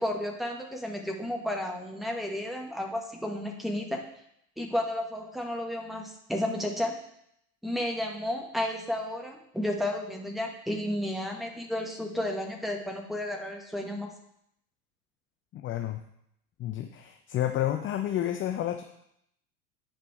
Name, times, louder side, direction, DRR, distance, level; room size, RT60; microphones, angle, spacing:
voice 1, 0.0-4.0 4.6-6.9 7.6-14.1, left 1 dB, ahead, 0 dB, 1.5 m, -32 dB
voice 2, 15.5-16.0 16.6-18.8, left 11 dB, 25° left, 6 dB, 0.6 m, -30 dB
8.9 x 5.2 x 4.8 m, 0.75 s
figure-of-eight pair, 80°, 45 cm